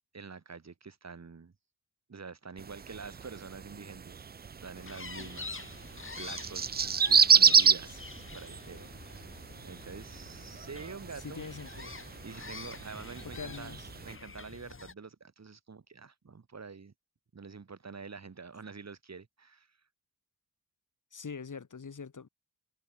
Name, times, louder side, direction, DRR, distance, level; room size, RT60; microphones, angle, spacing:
voice 1, 0.1-1.5 2.1-4.2 4.5-9.3 9.6-11.5 12.2-13.8 14.0-16.9 17.3-19.7, right 5 dB, 45° right, 3.9 m, -47 dB
sound 1, 2.6-14.2, right 6 dB, 25° right, 0.4 m, -30 dB
sound 2, 4.8-14.9, left 4 dB, 30° left, 3.5 m, -46 dB
voice 2, 11.2-12.0 13.2-13.9 21.1-22.3, left 5 dB, 50° left, 5.2 m, -44 dB
wide cardioid pair, 95°, 38 cm